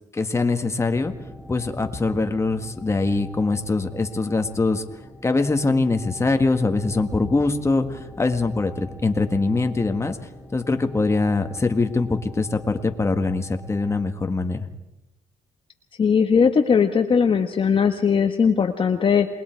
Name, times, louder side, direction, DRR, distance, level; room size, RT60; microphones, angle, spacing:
voice 1, 0.1-1.1 1.5-4.8 5.2-10.2 10.5-14.7, left 3 dB, 20° left, 6 dB, 1.8 m, -23 dB
sound 1, 0.8-14.2, left 1 dB, 5° left, 4.9 m, -43 dB
voice 2, 16.0-19.3, left 6 dB, 40° left, 5 dB, 1.4 m, -19 dB
28.5 x 20.5 x 4.7 m, 0.98 s
cardioid pair, 90°, 13 cm